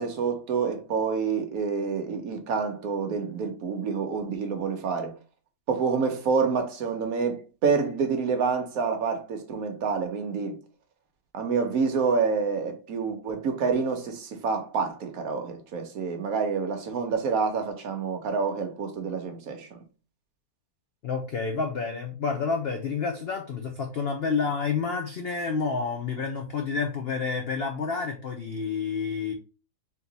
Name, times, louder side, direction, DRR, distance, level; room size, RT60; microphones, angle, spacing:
voice 1, 0.0-5.1 5.7-10.6 11.3-19.8, right 5 dB, 65° right, 1.2 m, -28 dB
voice 2, 21.0-29.3, left 5 dB, 90° left, 0.5 m, -29 dB
3.7 x 2.9 x 3.9 m
omnidirectional pair, 1.8 m